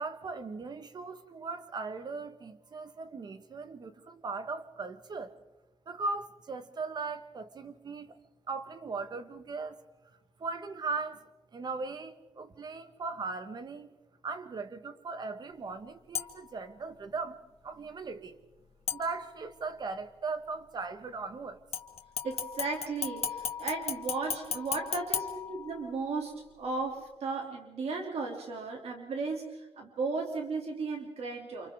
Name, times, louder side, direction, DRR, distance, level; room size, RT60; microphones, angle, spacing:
voice 1, 0.0-5.3 5.9-8.2 8.5-9.8 10.4-11.2 11.5-13.9 14.2-18.4 18.9-21.6, right 4 dB, 40° right, 1.4 m, -38 dB
sound 1, 16.1-16.6 18.9-19.6 21.7-26.1 26.5-26.6, left 7 dB, 70° left, 1.9 m, -36 dB
voice 2, 22.2-31.7, right 4 dB, 70° right, 2.8 m, -35 dB
30.0 x 27.5 x 3.7 m
wide cardioid pair, 170°, 11 cm